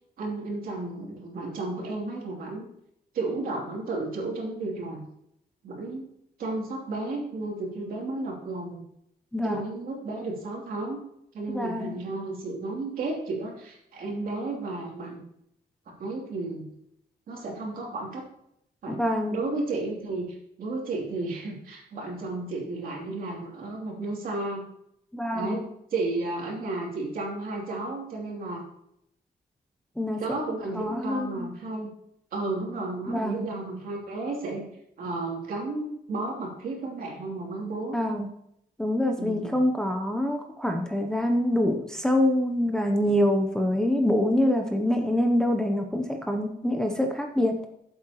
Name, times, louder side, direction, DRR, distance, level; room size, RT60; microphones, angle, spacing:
voice 1, 0.2-2.7 3.1-5.0 5.6-6.1 6.4-8.8 9.4-11.0 11.3-15.2 15.9-16.6 17.3-18.3 18.8-19.0 19.3-24.6 25.3-28.6 30.2-31.9 32.3-34.7 35.0-38.0 39.2-39.6, right 2 dB, 60° right, -1 dB, 2.9 m, -33 dB
voice 2, 11.5-12.0 19.0-19.4 25.1-25.6 30.0-30.2 30.8-31.5 33.1-33.5 37.9-38.3 38.8-47.6, left 1 dB, 5° left, 3 dB, 0.7 m, -25 dB
13.5 x 7.7 x 3.0 m, 0.76 s
wide cardioid pair, 180°, 17 cm